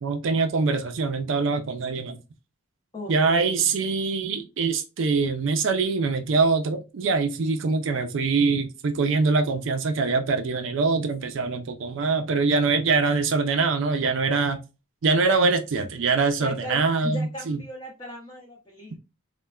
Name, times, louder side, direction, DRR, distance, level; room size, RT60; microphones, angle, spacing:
voice 1, 0.0-2.2 3.1-14.6 15.0-17.6, right 4 dB, 60° right, 0.4 m, -23 dB
voice 2, 2.9-3.8 16.3-19.0, left 1 dB, 25° left, 0.5 m, -38 dB
3.1 x 2.1 x 2.2 m
head